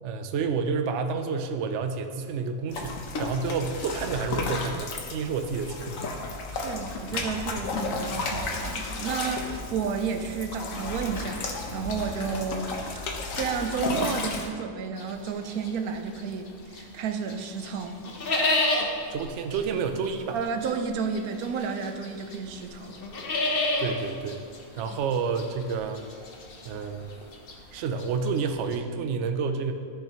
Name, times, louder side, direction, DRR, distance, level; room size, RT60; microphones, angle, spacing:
voice 1, 0.0-5.9 19.1-20.4 23.8-24.4 24.8-26.0 26.6-27.1 27.7-29.7, right 5 dB, 65° right, 6 dB, 0.8 m, -29 dB
sound 1, 2.7-14.5, left 3 dB, 70° left, 1.3 m, -33 dB
voice 2, 6.5-12.7 13.4-18.0 20.3-23.0, right 6 dB, 85° right, 6 dB, 1.1 m, -31 dB
sound 2, 15.0-17.0 17.3-28.8, left 2 dB, 45° left, 1.0 m, -31 dB
13.5 x 5.4 x 3.0 m, 2.1 s
omnidirectional pair, 1.5 m